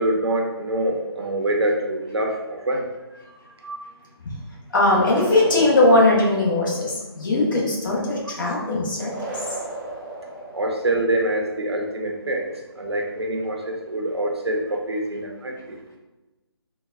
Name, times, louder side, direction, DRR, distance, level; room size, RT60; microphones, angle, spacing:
voice 1, 0.0-2.9 3.6-3.8 10.5-12.5 12.7-15.8, right 1 dB, 70° right, 1 dB, 0.7 m, -25 dB
voice 2, 4.7-9.1, left 2 dB, 50° left, -3 dB, 1.0 m, -19 dB
sound 1, 4.8-6.9 9.0-11.1, right 1 dB, 20° right, 0.7 m, -35 dB
3.8 x 2.2 x 2.5 m, 1.1 s
figure-of-eight pair, 145°, 14 cm